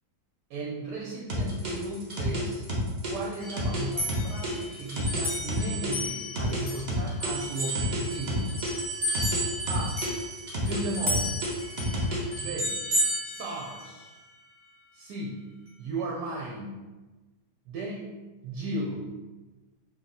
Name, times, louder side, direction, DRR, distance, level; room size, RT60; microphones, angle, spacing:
voice 1, 0.5-2.7 3.0-8.5 9.7-10.0 10.6-11.3 12.4-12.7 13.2-14.1 14.9-15.4 15.8-16.7 17.7-18.1 18.4-19.1, right 2 dB, 85° right, -2 dB, 1.2 m, -36 dB
sound 1, 1.3-5.9 6.4-9.4 9.7-12.4, right 1 dB, 50° right, 0.5 m, -31 dB
sound 2, 3.4-6.9 7.2-14.1, equal, 30° right, 0.9 m, -33 dB
2.8 x 2.7 x 4.0 m, 1.2 s
omnidirectional pair, 1.8 m